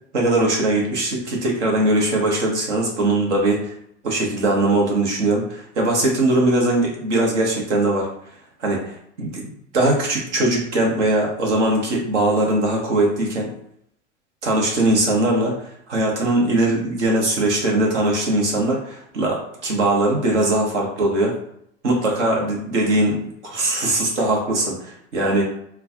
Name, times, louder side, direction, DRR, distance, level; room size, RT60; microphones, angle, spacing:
voice 1, 0.1-3.7 4.0-8.1 8.6-9.5 9.7-13.5 14.4-21.3 21.8-23.2 23.4-25.4, right 2 dB, 85° right, -2 dB, 1.2 m, -20 dB
4.4 x 2.3 x 2.7 m, 0.71 s
hypercardioid pair, 80°, 34 cm